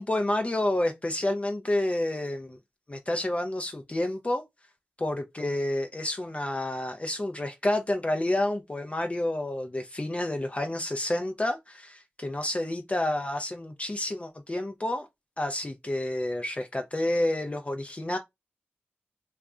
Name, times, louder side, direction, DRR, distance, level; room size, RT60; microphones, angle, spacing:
voice 1, 0.0-2.6 2.9-4.4 5.0-15.1 15.4-18.2, left 1 dB, 30° left, 0.4 m, -29 dB
2.4 x 2.1 x 3.6 m
cardioid pair, 45°, 4 cm